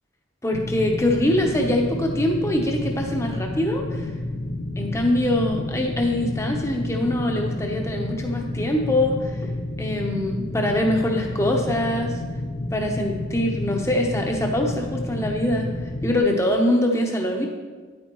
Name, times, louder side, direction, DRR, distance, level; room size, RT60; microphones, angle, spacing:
voice 1, 0.4-4.1 4.8-12.2 12.7-15.7 16.0-17.5, left 1 dB, 15° left, 2 dB, 0.9 m, -23 dB
sound 1, 0.5-16.2, left 2 dB, 50° left, 0.6 m, -30 dB
10.0 x 8.5 x 3.1 m, 1.4 s
head